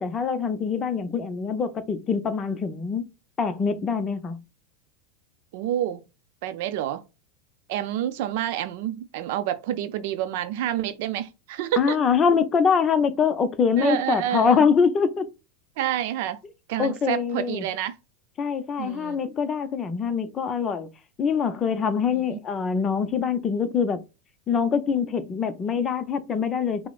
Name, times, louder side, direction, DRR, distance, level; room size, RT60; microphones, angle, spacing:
voice 1, 0.0-3.0 3.4-4.4 11.8-15.3 16.8-17.6 18.4-20.9 21.2-24.0 24.5-26.9, left 6 dB, 30° left, 0.6 m, -24 dB
voice 2, 5.5-6.0 6.4-7.0 7.7-12.0 13.8-14.6 15.8-16.4 16.7-18.0 18.8-19.2 22.1-22.4, right 11 dB, 65° right, 0.5 m, -28 dB
5.8 x 2.1 x 2.4 m
hypercardioid pair, 110°, 0 cm